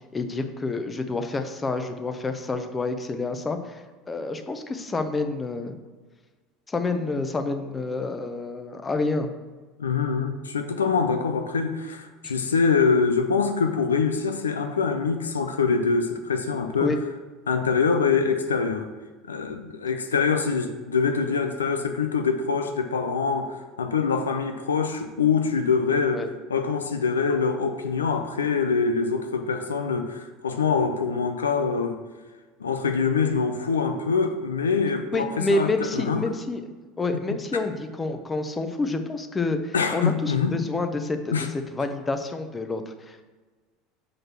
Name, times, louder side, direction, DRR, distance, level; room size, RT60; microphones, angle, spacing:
voice 1, 0.1-5.8 6.7-9.3 12.2-12.3 16.8-17.0 26.1-26.3 35.1-36.6 37.0-41.3 41.7-43.2, left 3 dB, 20° left, 7 dB, 0.8 m, -28 dB
voice 2, 9.8-17.0 17.5-18.9 19.3-32.0 32.6-36.2 39.7-40.6 41.3-41.5, left 5 dB, 85° left, 7 dB, 0.5 m, -24 dB
6.0 x 5.1 x 6.1 m, 1.4 s
hypercardioid pair, 75°, 0 cm